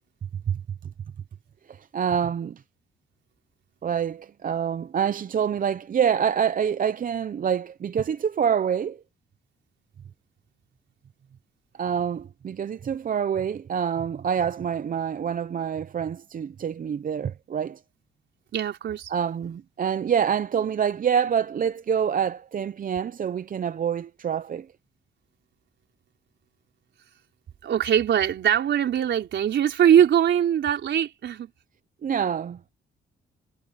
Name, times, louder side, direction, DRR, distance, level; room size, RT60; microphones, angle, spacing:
voice 1, 1.7-2.6 3.8-9.0 11.8-17.8 19.1-24.7 32.0-32.7, right 8 dB, 45° right, 0.8 m, -26 dB
voice 2, 18.5-19.1 27.6-31.5, right 9 dB, 65° right, 4.4 m, -21 dB
cardioid pair, 90°, 20 cm